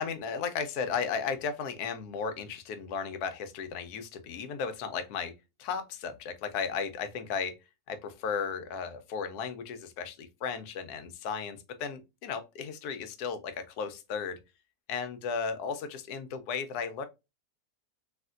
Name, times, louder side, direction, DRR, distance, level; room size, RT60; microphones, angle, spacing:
voice 1, 0.0-7.6 7.9-14.4 14.9-17.1, left 6 dB, 85° left, 1.1 m, -35 dB
3.3 x 2.5 x 2.3 m
omnidirectional pair, 1.6 m